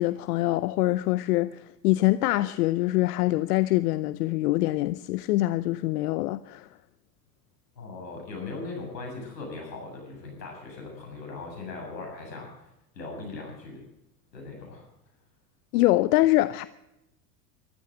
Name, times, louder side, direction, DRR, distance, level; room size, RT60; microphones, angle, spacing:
voice 1, 0.0-6.7 15.7-16.7, left 17 dB, 65° left, 0.7 m, -24 dB
voice 2, 7.8-12.5 13.0-13.8 14.3-14.9, left 3 dB, 85° left, 7.6 m, -39 dB
15.0 x 12.5 x 6.3 m
hypercardioid pair, 95°, 49 cm